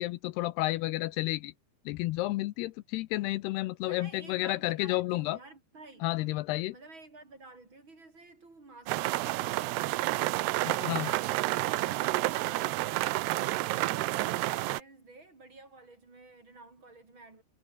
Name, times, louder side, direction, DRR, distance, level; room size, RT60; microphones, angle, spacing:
voice 1, 0.0-1.5 1.9-5.4 6.0-6.7 10.7-11.1, left 18 dB, 80° left, 2.7 m, -31 dB
voice 2, 3.8-6.1 6.7-10.4 10.7-17.4, right 3 dB, 30° right, 4.9 m, -52 dB
sound 1, 8.9-14.8, right 18 dB, 80° right, 2.8 m, -30 dB
omnidirectional pair, 4.8 m